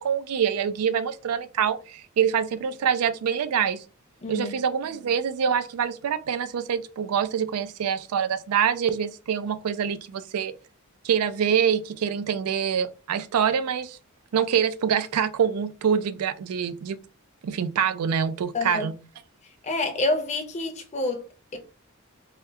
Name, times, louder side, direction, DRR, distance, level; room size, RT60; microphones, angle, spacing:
voice 1, 0.0-3.8 4.3-10.6 11.0-14.0 14.3-17.0 17.4-18.9, right 7 dB, 85° right, 0.4 m, -25 dB
voice 2, 4.2-4.5 18.5-18.9 19.6-21.2 21.5-21.6, left 2 dB, 30° left, 0.5 m, -27 dB
3.4 x 2.3 x 2.7 m
head